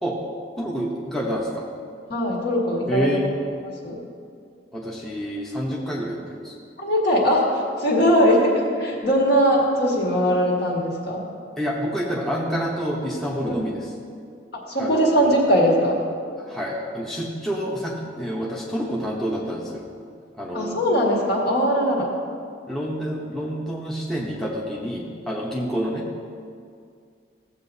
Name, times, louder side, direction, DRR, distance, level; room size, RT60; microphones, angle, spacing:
voice 1, 0.6-1.6 2.9-3.3 4.7-6.5 11.6-13.8 14.8-15.3 16.4-19.8 20.4-20.8 22.7-26.1, equal, ahead, -4 dB, 0.8 m, -28 dB
voice 2, 2.1-3.1 3.6-4.0 6.8-11.3 13.4-13.7 14.7-16.0 20.5-22.1, equal, 55° left, -3 dB, 1.8 m, -20 dB
15.5 x 7.7 x 2.7 m, 2.2 s
head